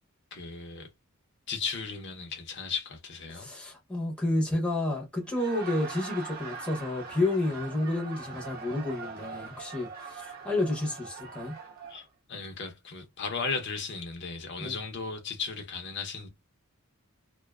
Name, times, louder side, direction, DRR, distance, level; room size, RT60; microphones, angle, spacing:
voice 1, 0.3-0.9 1.5-3.5 11.9-16.3, left 5 dB, 50° left, 0.6 m, -36 dB
voice 2, 3.3-11.5 14.6-14.8, left 2 dB, 5° left, 0.6 m, -30 dB
Laughter, 5.2-12.1, right 5 dB, 45° right, 0.7 m, -42 dB
2.4 x 2.2 x 2.2 m
head